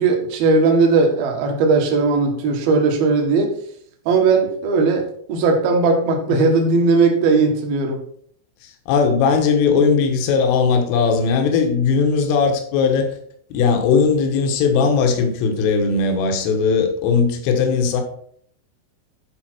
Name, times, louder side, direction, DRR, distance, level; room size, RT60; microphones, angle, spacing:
voice 1, 0.0-3.6 4.1-8.0, right 4 dB, 60° right, 2 dB, 2.8 m, -17 dB
voice 2, 8.6-13.1 13.5-18.0, left 5 dB, 75° left, 4 dB, 3.9 m, -18 dB
13.0 x 5.2 x 4.5 m, 0.62 s
omnidirectional pair, 5.9 m